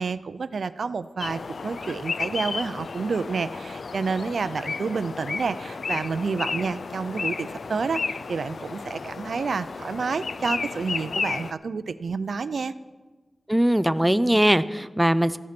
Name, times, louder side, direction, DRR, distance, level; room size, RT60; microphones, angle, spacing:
voice 1, 0.0-12.7, right 5 dB, 75° right, 14 dB, 0.4 m, -29 dB
sound 1, 1.2-11.5, left 4 dB, 70° left, 0.4 m, -33 dB
voice 2, 13.5-15.4, right 1 dB, 5° right, 13 dB, 0.4 m, -20 dB
14.0 x 10.0 x 5.9 m, 1.3 s
wide cardioid pair, 115°, 0 cm